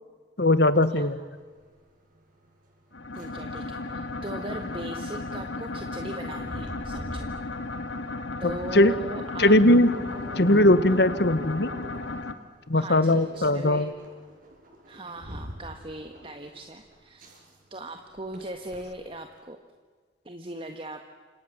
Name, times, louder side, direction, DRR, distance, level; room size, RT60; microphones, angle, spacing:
voice 1, 0.4-1.2 8.4-8.9 9.4-9.9 10.3-11.7 12.7-13.9, left 1 dB, 60° left, 13 dB, 1.5 m, -20 dB
sound 1, 0.6-19.4, equal, 50° right, 7.2 m, -45 dB
sound 2, 2.9-12.3, left 2 dB, 80° left, 2.2 m, -35 dB
voice 2, 3.1-7.3 8.4-9.5 11.1-11.2 12.7-13.9 14.9-17.3 17.7-19.6 20.2-21.0, right 1 dB, 30° right, 5 dB, 1.6 m, -39 dB
29.5 x 26.0 x 7.4 m, 1.5 s
head